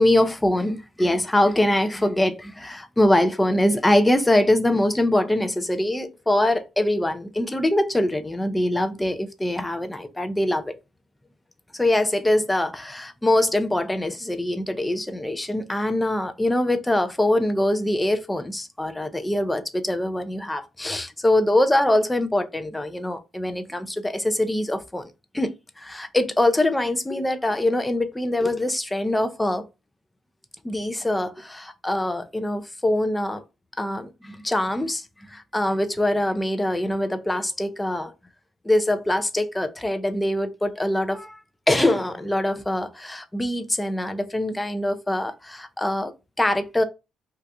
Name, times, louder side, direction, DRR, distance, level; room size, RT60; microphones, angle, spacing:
voice 1, 0.0-10.8 11.7-29.6 30.6-33.4 33.8-38.1 38.6-41.4 41.7-46.8, left 1 dB, 10° left, 0.5 m, -23 dB
2.8 x 2.5 x 3.3 m
cardioid pair, 90°, 0 cm